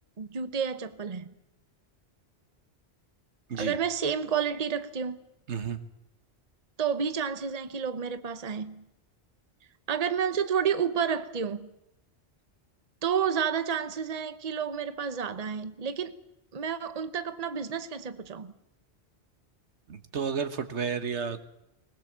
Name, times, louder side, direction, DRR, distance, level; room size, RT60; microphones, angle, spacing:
voice 1, 0.2-1.3 3.6-5.2 6.8-8.8 9.9-11.7 13.0-16.2 16.5-18.5, right 7 dB, 40° right, 1.0 m, -30 dB
voice 2, 5.5-5.8 19.9-21.5, right 6 dB, 85° right, 1.6 m, -32 dB
20.0 x 20.0 x 7.4 m
omnidirectional pair, 1.1 m